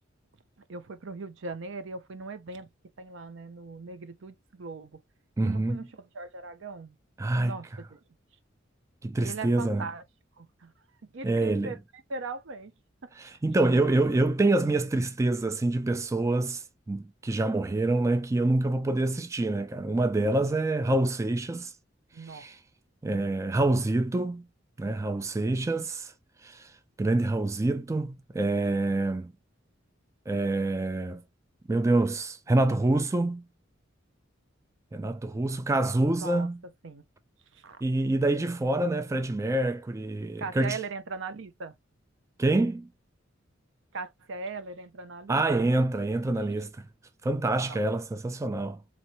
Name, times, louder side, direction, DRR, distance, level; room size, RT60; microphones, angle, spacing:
voice 1, 0.7-2.7 3.0-5.0 5.4-6.9 7.3-8.0 9.2-10.0 10.4-10.7 11.1-11.8 12.1-12.7 13.2-13.3 13.7-13.8 22.1-22.5 36.1-36.5 36.8-37.0 37.5-37.8 40.4-41.8 43.9-45.7 47.6-47.8, right 4 dB, 70° right, 0.7 m, -39 dB
voice 2, 5.4-5.8 7.2-7.6 9.0-9.9 11.2-11.7 13.2-21.7 22.2-22.6 23.0-24.5 24.8-26.1 26.4-29.3 30.3-31.2 31.7-33.5 34.9-36.6 37.8-40.8 42.4-42.9 45.3-46.8 47.2-48.8, right 2 dB, 15° right, 0.3 m, -26 dB
4.2 x 2.9 x 2.9 m
head